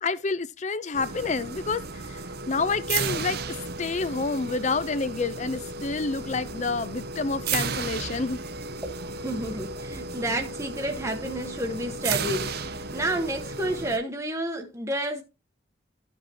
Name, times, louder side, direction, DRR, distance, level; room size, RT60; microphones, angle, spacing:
voice 1, 0.0-3.4 3.8-8.4, left 4 dB, 35° left, 0.5 m, -28 dB
sound 1, 0.9-14.0, right 4 dB, 50° right, 0.6 m, -34 dB
voice 2, 8.8-15.2, right 1 dB, 15° right, 0.9 m, -30 dB
13.0 x 5.3 x 2.8 m
head